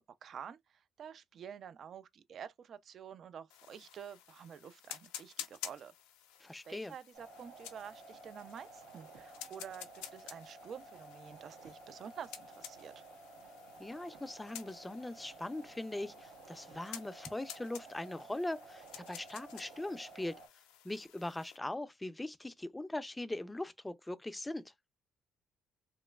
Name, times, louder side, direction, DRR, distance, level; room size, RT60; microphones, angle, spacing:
voice 1, 0.0-5.9 6.6-13.0, right 8 dB, 55° right, 0.4 m, -49 dB
sound 1, 3.5-21.6, left 11 dB, 90° left, 0.4 m, -52 dB
voice 2, 6.4-6.9 13.8-20.4 20.8-24.6, left 1 dB, 10° left, 0.4 m, -40 dB
sound 2, 7.1-20.5, right 2 dB, 90° right, 1.0 m, -54 dB
3.0 x 2.2 x 2.2 m
supercardioid pair, 70°, 0 cm